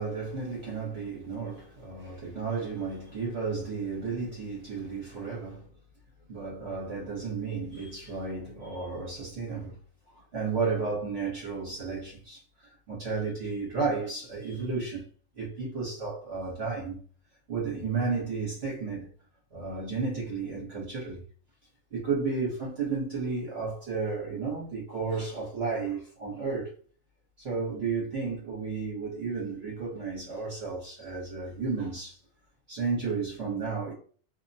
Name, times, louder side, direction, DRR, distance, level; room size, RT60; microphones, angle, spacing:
voice 1, 0.0-5.7 6.3-9.8 10.1-15.0 15.3-17.0 17.5-19.1 19.5-21.2 21.9-26.7 27.4-32.2 32.7-33.9, right 4 dB, 55° right, 1.2 m, -33 dB
2.7 x 2.1 x 2.6 m
omnidirectional pair, 1.4 m